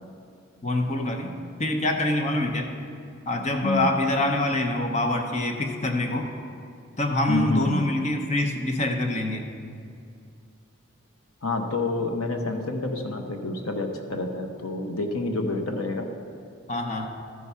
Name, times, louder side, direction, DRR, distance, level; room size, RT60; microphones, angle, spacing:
voice 1, 0.6-1.3 1.6-2.7 3.3-6.3 7.0-9.4 16.7-17.1, left 1 dB, 30° left, 3 dB, 0.7 m, -25 dB
voice 2, 7.3-7.8 11.4-16.1, left 2 dB, 90° left, 4 dB, 0.9 m, -28 dB
13.0 x 4.7 x 5.6 m, 2.4 s
head